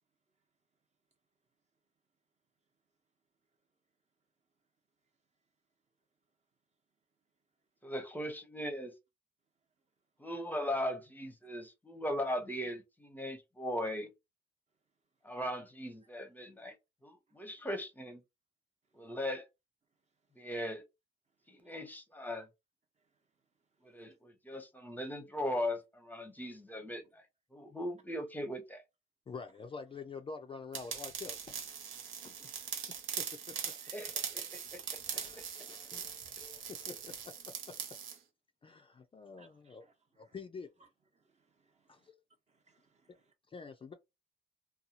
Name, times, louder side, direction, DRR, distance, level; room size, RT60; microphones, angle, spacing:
voice 1, 7.8-8.9 10.2-14.1 15.2-16.8 17.0-18.2 18.9-19.5 20.4-20.8 21.5-22.5 23.8-27.2 27.5-28.8 33.9-34.8, left 1 dB, 10° left, 0.7 m, -39 dB
voice 2, 29.3-31.6 32.2-33.4 35.1-37.2 37.7-37.8 38.6-39.8 40.2-40.7 41.9-42.2 43.5-43.9, left 5 dB, 25° left, 0.4 m, -47 dB
sound 1, 30.7-38.2, right 8 dB, 75° right, 0.7 m, -41 dB
voice 3, 32.0-32.4 39.4-39.9 40.2-40.3 41.2-42.1 42.5-43.3, right 4 dB, 35° right, 0.9 m, -70 dB
2.7 x 2.3 x 2.8 m
cardioid pair, 90°, 20 cm